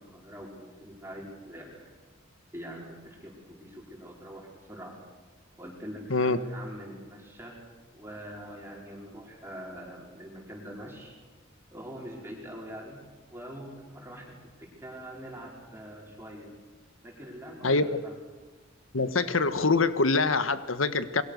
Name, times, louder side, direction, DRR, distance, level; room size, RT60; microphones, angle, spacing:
voice 1, 0.0-1.9 2.5-5.0 5.6-7.6 7.9-11.2 11.7-13.0 13.3-16.5 17.0-18.1, equal, 10° right, -2 dB, 5.0 m, -44 dB
voice 2, 18.9-21.2, left 3 dB, 85° left, 12 dB, 1.4 m, -24 dB
29.5 x 22.5 x 6.7 m, 1.3 s
head